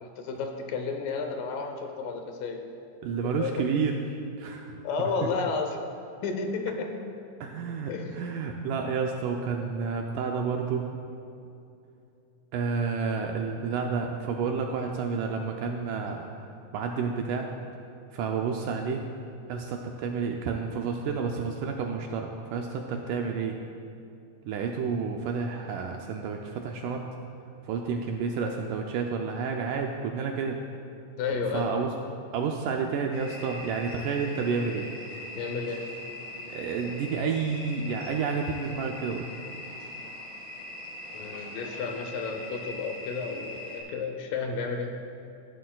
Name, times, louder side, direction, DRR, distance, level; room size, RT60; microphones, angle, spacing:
voice 1, 0.0-2.6 3.4-3.5 4.8-5.7 6.2-6.9 7.9-8.2 22.9-23.1 31.2-31.7 35.4-35.8 41.1-44.9, left 4 dB, 80° left, 4 dB, 2.4 m, -32 dB
voice 2, 3.0-4.0 4.4-4.8 7.4-10.9 12.5-16.3 16.7-17.5 18.1-19.0 19.5-23.6 24.5-27.0 27.7-30.6 31.5-31.9 32.3-34.9 36.5-39.3, right 5 dB, 80° right, 2 dB, 2.0 m, -30 dB
sound 1, 33.1-43.8, left 1 dB, 65° left, 3.5 m, -41 dB
15.0 x 11.5 x 2.3 m, 2.6 s
omnidirectional pair, 4.0 m